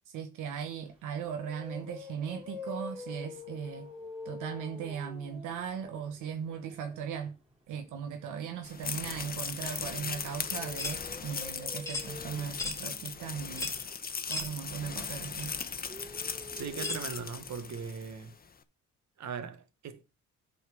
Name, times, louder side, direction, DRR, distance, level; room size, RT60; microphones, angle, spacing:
voice 1, 0.1-3.9 4.2-7.4 7.7-13.7 14.3-15.6, right 7 dB, 90° right, 1.0 m, -38 dB
sound 1, 0.8-0.9 1.3-7.2 9.3-17.4 17.6-17.7 18.1-18.2, left 3 dB, 20° right, 3.0 m, -47 dB
sound 2, 8.6-18.2, left 6 dB, 30° left, 0.9 m, -38 dB
sound 3, 10.8-11.0 11.9-12.1 12.6-12.8 13.6-13.8 14.3-14.5 15.4-15.5 16.8-17.1, left 2 dB, 10° left, 2.1 m, -35 dB
voice 2, 16.6-18.3 19.2-20.0, right 6 dB, 65° right, 1.4 m, -39 dB
9.4 x 4.3 x 6.0 m
cardioid pair, 90°, 30 cm